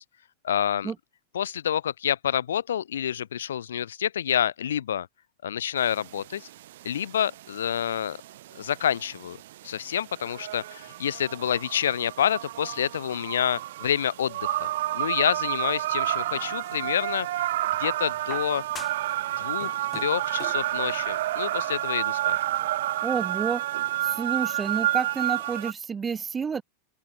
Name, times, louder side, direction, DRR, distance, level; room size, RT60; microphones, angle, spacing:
voice 1, 0.4-0.9 1.3-5.1 5.4-6.5 6.8-8.2 8.6-9.4 9.6-14.7 14.9-17.5 17.8-18.6 19.4-22.4, left 9 dB, 65° left, 0.5 m, -28 dB
sound 1, 5.8-25.7, right 14 dB, 55° right, 0.8 m, -30 dB
sound 2, 16.0-17.0 17.8-19.2 19.4-20.7 21.8-21.9, left 7 dB, 20° left, 3.2 m, -45 dB
voice 2, 23.0-23.6 24.0-26.6, right 6 dB, 20° right, 1.5 m, -29 dB
open air
figure-of-eight pair, 90°, 0 cm